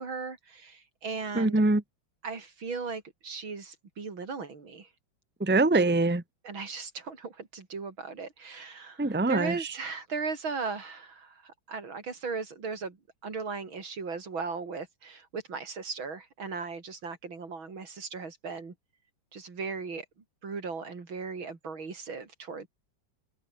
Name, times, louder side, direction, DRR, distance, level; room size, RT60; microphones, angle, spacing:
voice 1, 0.0-1.6 2.2-4.9 6.4-13.0 13.2-18.7 19.3-20.0 20.4-22.7, right 4 dB, 75° right, 4.2 m, -37 dB
voice 2, 1.3-1.8 5.4-6.2 9.0-9.7, right 2 dB, 5° right, 1.3 m, -24 dB
open air
omnidirectional pair, 2.2 m